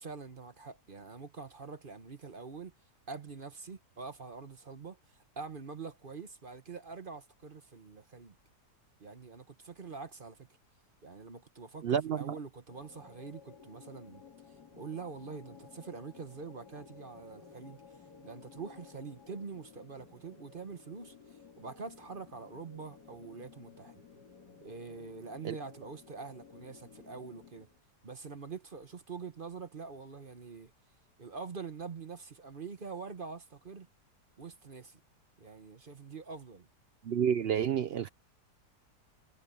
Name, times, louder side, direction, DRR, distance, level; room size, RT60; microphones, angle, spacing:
voice 1, 0.0-2.7 3.1-8.4 9.0-10.5 11.0-14.2 14.7-17.8 18.2-24.0 24.6-27.7 28.0-30.7 31.2-33.9 34.4-35.0 35.4-36.7, right 5 dB, 35° right, 1.1 m, -45 dB
voice 2, 11.8-12.4 25.4-25.5 37.0-38.1, right 8 dB, 75° right, 0.5 m, -29 dB
sound 1, 12.7-27.8, left 6 dB, 80° left, 2.6 m, -55 dB
omnidirectional pair, 1.7 m